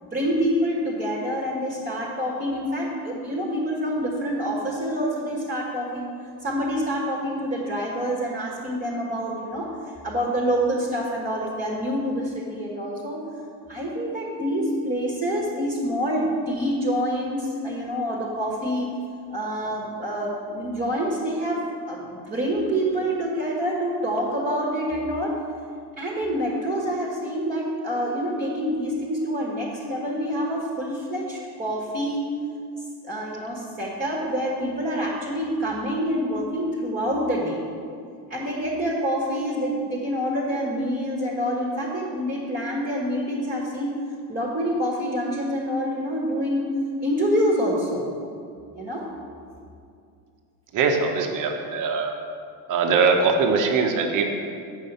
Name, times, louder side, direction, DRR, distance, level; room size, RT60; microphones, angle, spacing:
voice 1, 0.0-6.1 6.4-9.7 10.0-13.2 13.7-18.9 19.3-25.4 26.0-32.2 33.0-37.6 38.3-44.0 44.3-46.7 47.0-48.1 48.7-49.1, equal, 20° right, -5 dB, 1.6 m, -26 dB
voice 2, 50.7-52.1 52.7-54.2, right 4 dB, 45° right, 3 dB, 1.2 m, -21 dB
8.3 x 5.6 x 5.6 m, 2.4 s
supercardioid pair, 100°, 44 cm